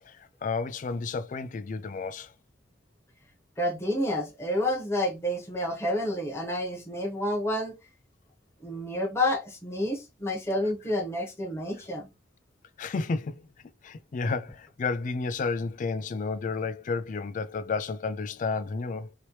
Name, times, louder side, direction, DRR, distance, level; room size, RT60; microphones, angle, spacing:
voice 1, 0.0-2.3 12.8-13.5 13.8-19.1, left 4 dB, 45° left, 0.4 m, -31 dB
voice 2, 3.6-7.7 8.6-12.1, left 1 dB, 15° left, 1.0 m, -29 dB
3.0 x 2.9 x 3.0 m
head